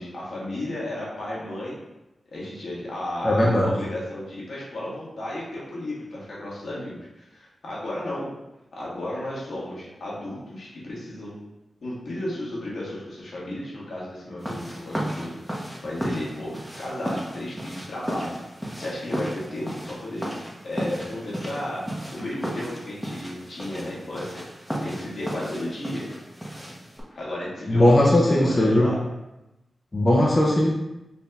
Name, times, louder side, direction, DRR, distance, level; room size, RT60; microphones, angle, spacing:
voice 1, 0.0-1.8 2.3-8.3 8.7-11.4 11.8-15.3 15.8-18.3 18.7-21.8 22.1-24.4 24.8-26.1 27.1-29.0, left 1 dB, 75° left, -6 dB, 1.4 m, -33 dB
voice 2, 3.2-3.7 27.7-28.9 29.9-30.7, left 1 dB, 40° left, -4 dB, 0.7 m, -18 dB
sound 1, 14.4-27.0, equal, ahead, 1.0 m, -34 dB
4.1 x 2.7 x 3.4 m, 0.95 s
cardioid pair, 45°, 0 cm